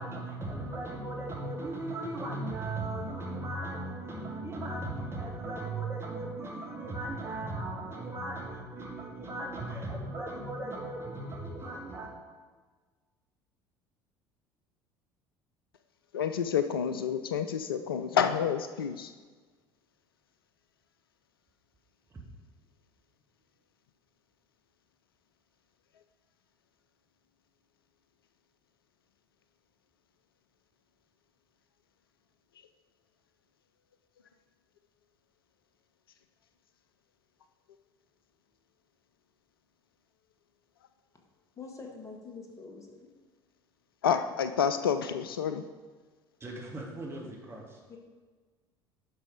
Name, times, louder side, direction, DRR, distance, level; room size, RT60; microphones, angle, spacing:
voice 1, 0.0-12.2 46.4-47.8, right 2 dB, 20° right, -2 dB, 2.4 m, -37 dB
voice 2, 16.1-19.1 44.0-45.6, left 7 dB, 75° left, 9 dB, 0.4 m, -29 dB
voice 3, 41.6-43.1 47.9-48.0, left 4 dB, 25° left, 2 dB, 1.7 m, -45 dB
10.5 x 6.2 x 5.0 m, 1.4 s
figure-of-eight pair, 60°, 12 cm